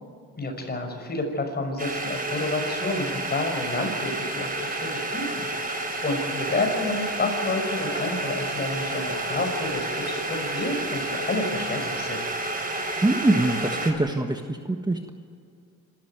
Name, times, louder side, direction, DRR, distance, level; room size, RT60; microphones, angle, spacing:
voice 1, 0.4-12.2, left 2 dB, 35° left, 3 dB, 6.2 m, -30 dB
sound 1, 1.8-13.9, right 2 dB, 30° right, 4.6 m, -30 dB
voice 2, 13.0-15.1, right 2 dB, 15° right, 5 dB, 1.5 m, -24 dB
26.5 x 14.0 x 9.5 m, 2.4 s
cardioid pair, 90°, 30 cm